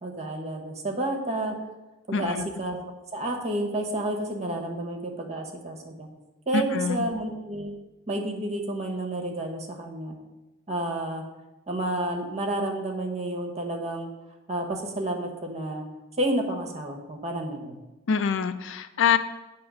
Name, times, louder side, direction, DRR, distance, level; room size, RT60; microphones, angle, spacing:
voice 1, 0.0-1.5 2.1-2.8 3.1-6.1 6.5-7.7 8.1-10.1 10.7-11.2 11.7-14.1 14.5-15.9 16.2-17.8, right 1 dB, 35° right, 2 dB, 1.1 m, -30 dB
voice 2, 2.1-2.5 6.5-7.1 18.1-19.2, left 6 dB, 65° left, 12 dB, 0.4 m, -25 dB
8.6 x 3.0 x 6.2 m, 1.1 s
head